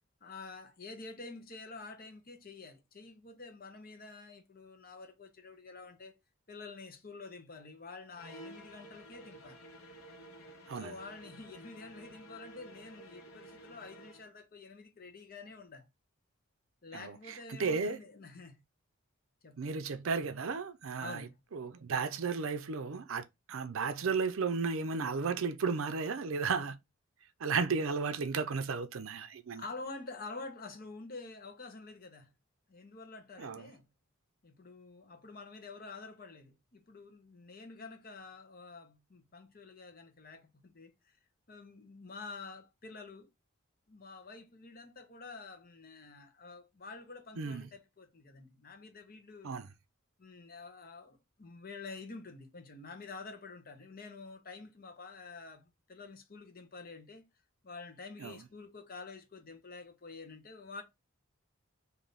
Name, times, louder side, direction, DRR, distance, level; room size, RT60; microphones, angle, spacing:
voice 1, 0.2-6.2 6.5-9.6 10.7-15.9 16.8-18.6 19.4-19.7 21.0-21.3 29.5-32.3 32.7-33.9 34.4-41.2 41.5-43.3 43.9-49.5 50.2-57.3 57.6-60.8, left 3 dB, 45° left, 0.8 m, -48 dB
sound 1, 8.1-14.3, right 1 dB, 80° left, 0.9 m, -52 dB
voice 2, 16.9-18.0 19.6-26.8 27.4-29.6 33.4-33.7 47.4-47.7 49.4-49.7 58.2-58.4, right 5 dB, 70° right, 0.5 m, -34 dB
3.3 x 2.7 x 3.9 m
head